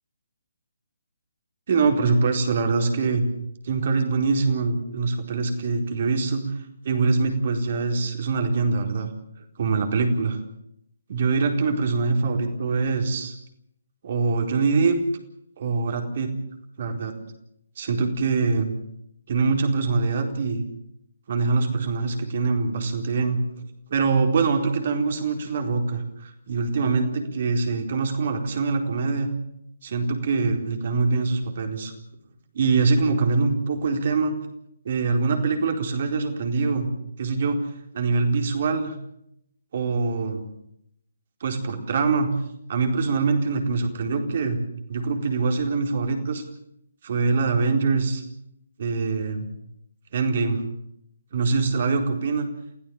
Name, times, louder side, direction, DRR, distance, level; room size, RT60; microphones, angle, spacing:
voice 1, 1.7-3.2 3.6-6.5 6.8-9.1 9.6-10.4 11.1-13.3 14.0-15.0 15.6-16.3 16.8-17.1 17.8-18.7 19.3-20.6 21.3-23.6 23.9-29.3 29.8-31.9 32.5-34.3 34.8-36.9 37.2-37.6 37.9-39.0 39.7-40.4 41.4-42.3 42.7-44.6 44.9-46.4 47.0-48.2 48.8-49.5 50.1-50.6 51.3-52.5, right 4 dB, 45° right, 4 dB, 4.4 m, -24 dB
28.5 x 16.5 x 7.1 m, 0.76 s
figure-of-eight pair, 140°, 0 cm